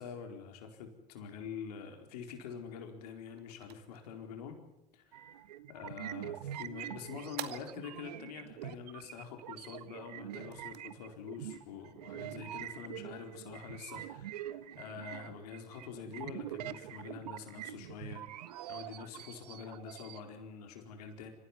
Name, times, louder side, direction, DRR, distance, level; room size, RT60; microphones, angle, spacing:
voice 1, 0.0-4.6 4.9-5.4 5.7-18.2 18.7-21.3, left 6 dB, 75° left, 5 dB, 4.4 m, -46 dB
sound 1, 3.0-12.8, right 13 dB, 55° right, 2.2 m, -53 dB
sound 2, 5.1-20.2, right 12 dB, 80° right, 1.1 m, -45 dB
27.5 x 15.5 x 9.9 m, 0.91 s
hypercardioid pair, 85°, 20 cm